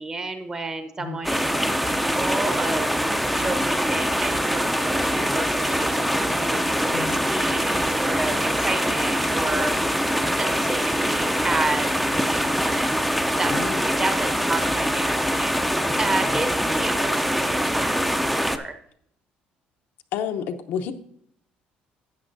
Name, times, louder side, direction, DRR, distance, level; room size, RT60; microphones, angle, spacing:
voice 1, 0.0-2.9 3.3-9.7 10.4-13.1 13.4-15.6 16.0-18.2 18.4-18.7, right 3 dB, 20° right, 8 dB, 0.9 m, -31 dB
sound 1, 1.2-18.6, equal, ahead, 0.5 m, -23 dB
voice 2, 20.1-20.9, left 8 dB, 80° left, 6 dB, 0.8 m, -29 dB
12.5 x 8.6 x 2.6 m, 0.67 s
cardioid pair, 135°, 3 cm